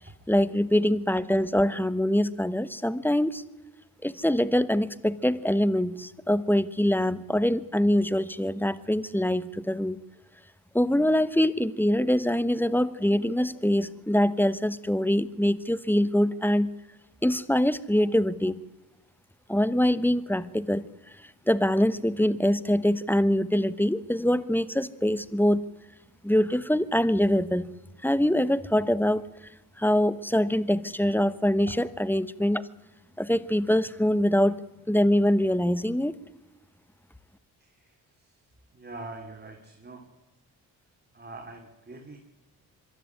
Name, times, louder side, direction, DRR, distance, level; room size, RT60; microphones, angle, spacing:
voice 1, 0.3-3.4 4.0-10.0 10.7-16.7 17.2-18.6 19.5-20.9 21.5-25.6 26.2-27.7 28.0-29.2 29.8-32.6 33.2-34.6 34.9-36.1, left 1 dB, 5° left, 16 dB, 1.2 m, -24 dB
voice 2, 38.7-40.1 41.1-42.2, right 2 dB, 20° right, 2 dB, 3.3 m, -43 dB
23.0 x 13.0 x 9.7 m, 1.0 s
hypercardioid pair, 45°, 44 cm